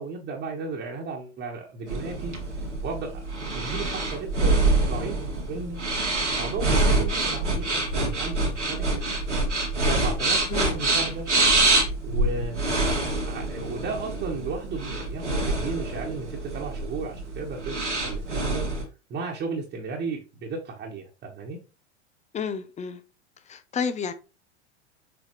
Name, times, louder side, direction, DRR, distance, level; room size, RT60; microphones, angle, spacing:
voice 1, 0.0-2.3 2.8-3.2 3.5-5.8 6.4-8.8 9.8-11.3 12.0-12.6 13.3-21.6, right 4 dB, 30° right, 1.6 m, -34 dB
sound 1, 1.9-18.8, right 2 dB, 90° right, 2.1 m, -26 dB
voice 2, 22.3-23.0 23.5-24.1, left 6 dB, 20° left, 0.9 m, -30 dB
7.0 x 5.0 x 3.2 m
figure-of-eight pair, 90°, 35 cm